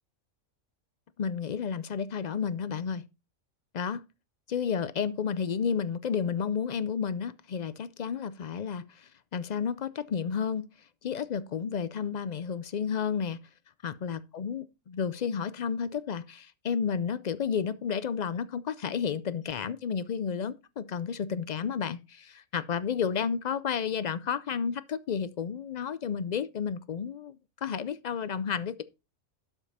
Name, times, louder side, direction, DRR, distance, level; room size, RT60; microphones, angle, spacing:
voice 1, 1.2-3.0 3.7-4.1 4.5-10.7 11.0-13.4 13.8-27.4 27.6-28.8, left 7 dB, 65° left, 0.4 m, -31 dB
12.0 x 5.3 x 4.2 m
omnidirectional pair, 1.4 m